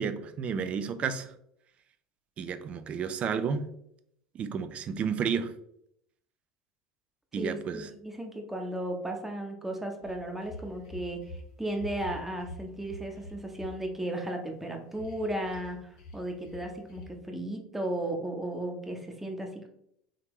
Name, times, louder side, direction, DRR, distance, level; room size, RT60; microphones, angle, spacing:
voice 1, 0.0-1.3 2.4-3.7 4.3-5.5 7.3-7.9, right 6 dB, 40° right, 10 dB, 0.4 m, -31 dB
voice 2, 7.4-11.2 11.6-19.7, right 1 dB, 5° right, 3 dB, 0.8 m, -35 dB
sound 1, 10.0-11.4 11.7-13.7 14.9-15.7 15.9-16.1 16.5-16.6 16.9-17.0, left 1 dB, 70° left, 1.0 m, -45 dB
3.6 x 2.7 x 3.0 m, 0.72 s
hypercardioid pair, 75°, 3 cm